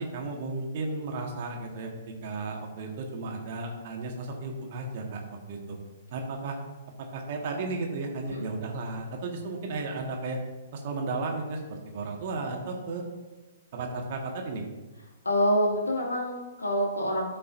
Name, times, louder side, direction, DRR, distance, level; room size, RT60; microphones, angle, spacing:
voice 1, 0.0-5.8 6.1-6.6 7.1-10.4 10.7-13.0 13.7-14.6, right 3 dB, 50° right, 1 dB, 1.7 m, -34 dB
voice 2, 15.2-17.4, equal, 85° left, -2 dB, 2.4 m, -26 dB
13.5 x 5.4 x 2.7 m, 1.2 s
figure-of-eight pair, 115°, 0 cm